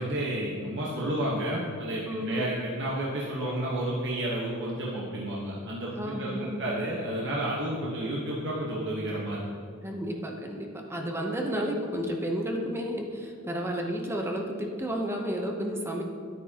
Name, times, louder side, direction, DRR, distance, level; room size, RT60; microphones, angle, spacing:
voice 1, 0.0-9.4, right 1 dB, 60° right, -5 dB, 1.2 m, -31 dB
voice 2, 2.1-2.5 5.9-6.6 9.8-16.0, equal, 10° right, 1 dB, 0.8 m, -32 dB
9.8 x 9.2 x 2.9 m, 2.2 s
head